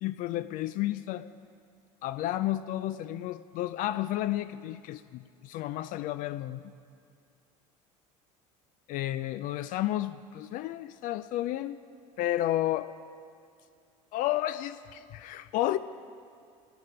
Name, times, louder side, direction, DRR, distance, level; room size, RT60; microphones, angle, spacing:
voice 1, 0.0-1.3 2.0-6.7 8.9-11.8 12.2-12.9 14.1-15.8, left 14 dB, 60° left, 14 dB, 0.4 m, -31 dB
14.0 x 11.5 x 5.1 m, 2.4 s
supercardioid pair, 105°, 16 cm